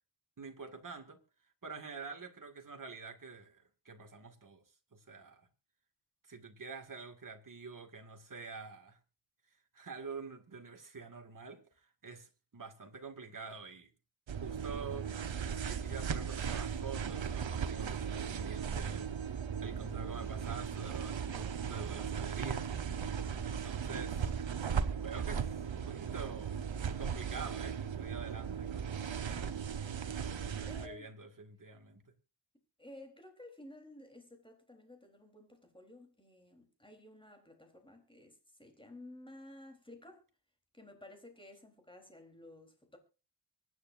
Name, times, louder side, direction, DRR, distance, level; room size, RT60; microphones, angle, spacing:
voice 1, 0.4-1.2 1.6-4.6 4.9-5.5 6.2-9.0 9.7-13.9 14.3-15.1 15.5-19.1 19.6-22.7 23.4-24.3 24.9-26.6 27.0-29.6 30.4-32.0, right 4 dB, 45° right, 2.3 m, -47 dB
sound 1, 14.3-30.9, right 7 dB, 85° right, 1.2 m, -37 dB
voice 2, 30.7-31.1 32.8-40.2 40.7-43.0, left 1 dB, 10° left, 3.8 m, -54 dB
24.5 x 9.7 x 2.6 m
wide cardioid pair, 115°, 45 cm